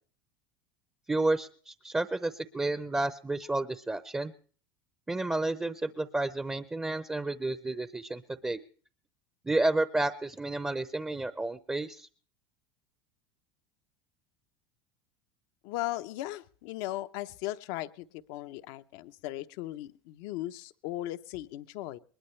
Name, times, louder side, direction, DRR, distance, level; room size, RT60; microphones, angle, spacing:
voice 1, 1.1-4.3 5.1-8.6 9.5-12.1, right 2 dB, 10° right, 12 dB, 0.7 m, -31 dB
voice 2, 15.6-22.0, left 15 dB, 70° left, 10 dB, 0.8 m, -37 dB
21.0 x 20.5 x 3.3 m, 0.44 s
supercardioid pair, 105°, 12 cm